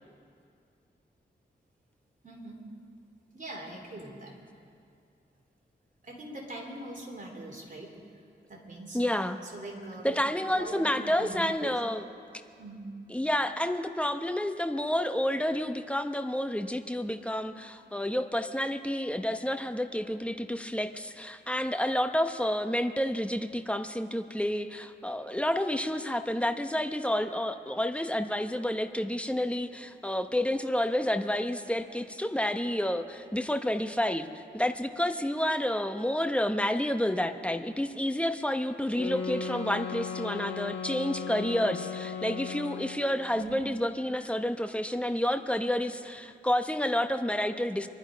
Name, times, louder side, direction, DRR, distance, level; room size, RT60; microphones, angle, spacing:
voice 1, 2.2-2.6 3.3-4.4 6.0-7.9 8.5-9.0 9.4-10.3 10.5-11.7 12.6-12.8 43.3-43.6, right 2 dB, 45° right, 0 dB, 3.4 m, -42 dB
voice 2, 8.9-9.4 10.0-12.1 13.1-47.9, left 1 dB, 5° left, 7 dB, 0.8 m, -29 dB
sound 1, 38.9-43.2, left 6 dB, 85° left, 1.8 m, -36 dB
25.0 x 11.0 x 5.2 m, 2.4 s
wide cardioid pair, 95°, 18 cm